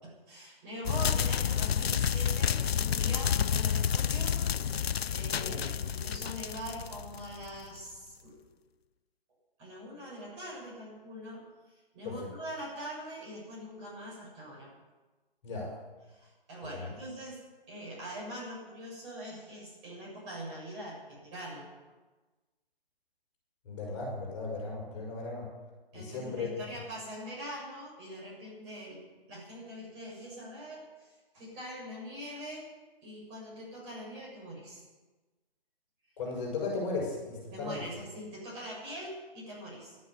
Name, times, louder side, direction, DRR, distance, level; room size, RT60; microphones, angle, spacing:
voice 1, 0.0-8.4 9.6-14.7 16.1-21.7 25.9-29.0 29.3-32.7 33.0-34.8 37.5-40.0, equal, 20° right, -5 dB, 6.7 m, -43 dB
sound 1, 0.9-7.6, left 8 dB, 90° left, 0.5 m, -30 dB
voice 2, 23.6-25.5 25.9-26.5 36.2-37.8, left 3 dB, 30° left, -2 dB, 6.4 m, -36 dB
12.5 x 11.5 x 9.8 m, 1.2 s
hypercardioid pair, 160°, 30 cm